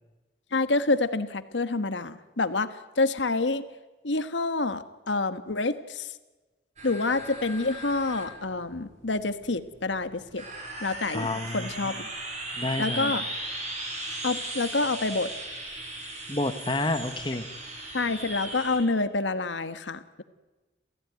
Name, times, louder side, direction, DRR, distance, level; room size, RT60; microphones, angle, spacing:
voice 1, 0.5-3.7 4.0-6.1 6.8-10.4 10.8-11.9 12.8-13.2 14.2-15.3 17.9-20.2, left 3 dB, 90° left, 11 dB, 1.4 m, -28 dB
sound 1, 6.8-18.8, right 1 dB, 40° right, 6.5 m, -37 dB
voice 2, 11.1-11.9 12.5-13.2 16.3-17.5, left 2 dB, 25° left, 8 dB, 1.3 m, -30 dB
28.5 x 15.5 x 9.5 m, 1.2 s
head